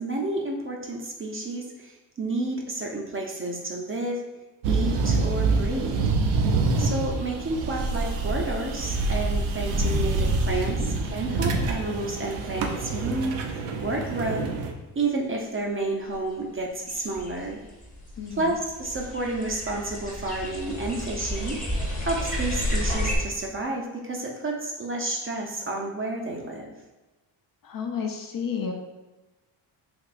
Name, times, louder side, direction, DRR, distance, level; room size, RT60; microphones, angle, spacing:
voice 1, 0.0-4.2 4.7-6.0 6.8-14.5 15.0-17.6 18.4-26.7, right 2 dB, 30° right, 0 dB, 0.5 m, -30 dB
sound 1, 4.6-14.7, right 3 dB, 85° right, 0.6 m, -26 dB
sound 2, 16.1-16.2 16.9-23.2, equal, 15° left, 0.9 m, -31 dB
voice 2, 18.2-18.6 27.6-28.7, left 6 dB, 45° left, 3 dB, 0.5 m, -32 dB
3.4 x 2.9 x 2.4 m, 1.1 s
cardioid pair, 75°, 48 cm